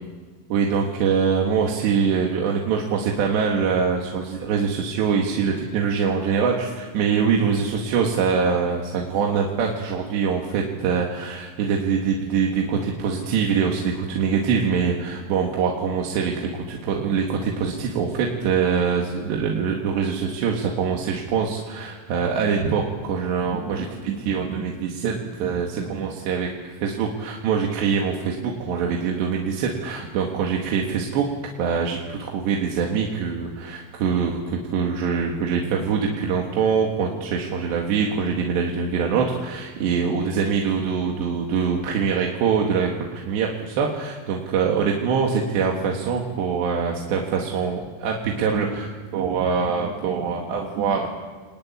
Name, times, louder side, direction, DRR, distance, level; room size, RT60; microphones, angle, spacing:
voice 1, 0.5-31.3 31.6-51.1, right 6 dB, 65° right, 0 dB, 3.9 m, -24 dB
27.5 x 22.5 x 9.8 m, 1.5 s
omnidirectional pair, 5.9 m